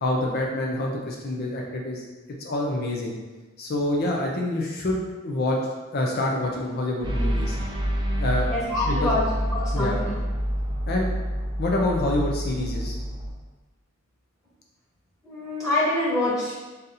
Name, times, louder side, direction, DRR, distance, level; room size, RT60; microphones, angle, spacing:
voice 1, 0.0-2.1 2.4-3.1 3.6-5.6 5.9-7.6 8.2-8.5 8.8-9.2 9.7-10.0 10.9-11.1 11.6-13.0, left 1 dB, 50° left, -1 dB, 0.5 m, -26 dB
sound 1, 7.0-13.3, equal, 20° right, 0.5 m, -27 dB
voice 2, 8.5-10.2 15.2-16.5, left 2 dB, 15° left, -9 dB, 1.2 m, -26 dB
4.0 x 2.6 x 4.0 m, 1.2 s
head